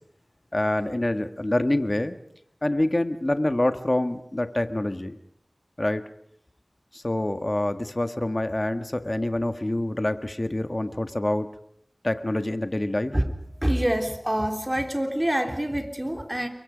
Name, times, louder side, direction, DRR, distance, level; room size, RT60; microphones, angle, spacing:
voice 1, 0.5-2.1 2.6-5.2 5.8-6.0 6.9-11.5 12.0-13.1, left 1 dB, 35° left, 8 dB, 1.6 m, -26 dB
voice 2, 13.6-16.5, right 1 dB, 20° right, 5 dB, 3.4 m, -26 dB
28.5 x 23.0 x 5.2 m, 0.68 s
wide cardioid pair, 55°, 0 cm